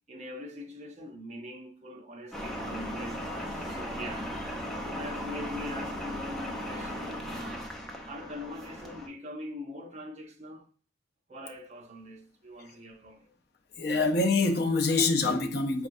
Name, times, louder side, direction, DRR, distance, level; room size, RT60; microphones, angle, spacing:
voice 1, 0.1-7.7 8.0-10.7 11.3-13.3, left 1 dB, 40° right, 0.7 m, -43 dB
sound 1, 2.3-9.1, equal, ahead, 0.6 m, -37 dB
voice 2, 13.8-15.9, left 3 dB, 60° left, 0.5 m, -25 dB
4.5 x 3.3 x 2.5 m
head